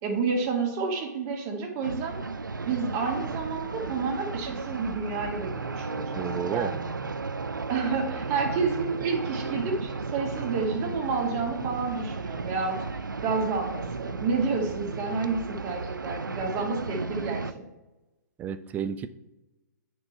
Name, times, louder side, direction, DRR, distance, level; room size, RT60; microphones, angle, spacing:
voice 1, 0.0-2.2 2.7-6.3 6.5-6.9 7.7-17.6, right 4 dB, 30° right, 1 dB, 2.0 m, -30 dB
sound 1, 1.8-17.5, right 4 dB, 85° right, 0.5 m, -34 dB
voice 2, 6.2-6.7 18.4-19.1, right 8 dB, 15° right, 12 dB, 0.4 m, -31 dB
9.4 x 4.6 x 4.4 m, 1.0 s
figure-of-eight pair, 125°, 10 cm